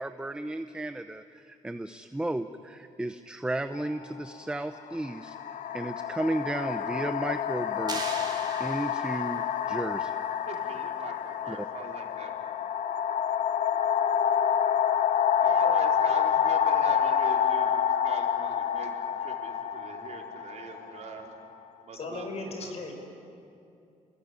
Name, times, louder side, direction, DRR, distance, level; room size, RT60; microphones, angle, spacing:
voice 1, 0.0-5.4 5.7-10.2 11.5-11.7, right 1 dB, 5° right, 9 dB, 0.8 m, -34 dB
sound 1, 3.7-3.9 4.9-21.5, left 8 dB, 65° left, 1.0 m, -28 dB
sound 2, 7.9-9.4, right 4 dB, 30° right, 4.3 m, -39 dB
voice 2, 10.5-12.6 15.4-21.3 21.8-22.7, right 5 dB, 55° right, 1 dB, 4.2 m, -42 dB
voice 3, 21.9-22.9, left 3 dB, 50° left, 4 dB, 5.8 m, -36 dB
29.5 x 20.5 x 9.8 m, 2.7 s
cardioid pair, 115°, 14 cm